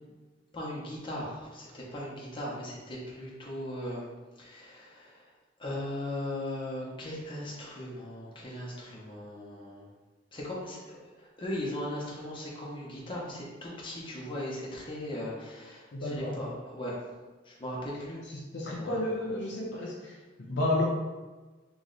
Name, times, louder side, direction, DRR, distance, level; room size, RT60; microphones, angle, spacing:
voice 1, 0.5-4.0 4.4-5.3 5.6-9.9 10.3-17.0 17.4-18.2 18.8-19.0, left 1 dB, 25° left, -5 dB, 0.9 m, -38 dB
voice 2, 15.9-16.4 18.5-20.8, left 1 dB, 65° left, -3 dB, 0.6 m, -31 dB
3.2 x 3.1 x 3.9 m, 1.3 s
head